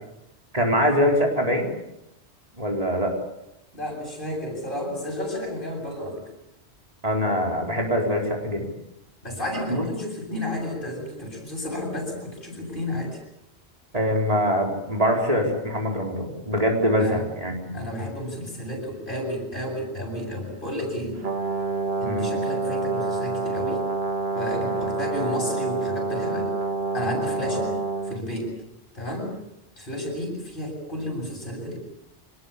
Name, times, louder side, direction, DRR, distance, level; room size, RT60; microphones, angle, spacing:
voice 1, 0.5-1.7 2.6-3.2 7.0-8.6 9.7-9.8 13.9-17.8 22.0-22.3 27.5-27.6, equal, 35° right, 0 dB, 4.7 m, -23 dB
voice 2, 3.7-6.2 9.2-13.2 17.0-17.3 17.7-21.2 22.0-23.8 24.3-26.5 26.9-27.7 28.1-28.5 28.9-29.3 29.8-31.8, left 1 dB, 50° left, 1 dB, 8.3 m, -31 dB
Brass instrument, 21.2-28.2, right 3 dB, 65° right, 1.9 m, -27 dB
25.5 x 20.5 x 8.6 m, 0.84 s
omnidirectional pair, 1.1 m